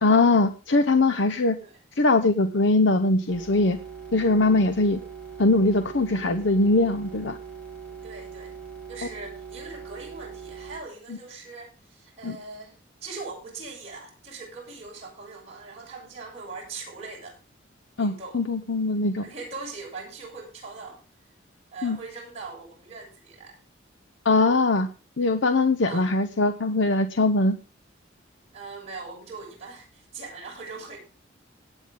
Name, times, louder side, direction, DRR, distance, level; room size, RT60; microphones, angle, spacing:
voice 1, 0.0-1.6 2.0-3.8 4.1-5.0 5.4-7.4 12.2-12.4 18.0-19.3 21.8-22.0 24.2-24.9 25.2-27.6, left 2 dB, 70° left, 7 dB, 0.8 m, -21 dB
sound 1, 3.3-10.8, right 6 dB, 5° left, 4.4 m, -41 dB
voice 2, 7.9-8.5 8.9-17.4 18.0-18.4 19.2-21.0 21.7-23.6 25.9-26.1 28.5-31.0, right 4 dB, 30° right, -3 dB, 6.9 m, -41 dB
18.0 x 9.1 x 3.7 m, 0.31 s
head